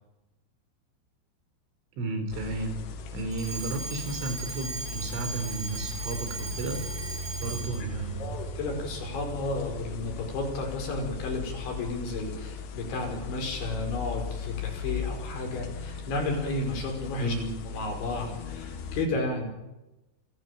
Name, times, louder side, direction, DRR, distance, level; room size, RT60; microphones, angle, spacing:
voice 1, 1.9-2.8 3.1-6.8 7.4-8.3 17.2-17.5, right 3 dB, 75° right, 8 dB, 6.1 m, -33 dB
sound 1, 2.3-19.1, left 4 dB, 85° left, 4.4 m, -38 dB
Alarm, 3.3-7.9, right 3 dB, 30° right, 0.4 m, -38 dB
voice 2, 8.2-17.3 17.7-19.5, left 2 dB, 65° left, 2 dB, 7.5 m, -32 dB
26.0 x 18.0 x 9.0 m, 0.99 s
omnidirectional pair, 5.6 m